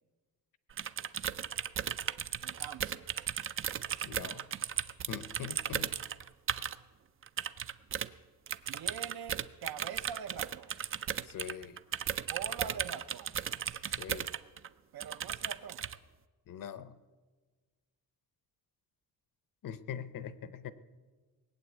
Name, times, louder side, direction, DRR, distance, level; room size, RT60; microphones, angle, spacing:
sound 1, 0.7-6.8 7.2-8.1 8.5-14.7 15.0-16.0, right 9 dB, 35° right, 0.4 m, -36 dB
voice 1, 2.4-3.1 8.7-10.7 12.3-13.3 14.9-15.8, right 8 dB, 75° right, 11 dB, 0.8 m, -43 dB
voice 2, 4.0-4.5 5.1-5.9 11.3-11.8 14.0-14.3 16.5-17.0 19.6-20.7, left 8 dB, 60° left, 15 dB, 0.8 m, -42 dB
19.0 x 8.8 x 8.1 m, 1.3 s
wide cardioid pair, 175°, 37 cm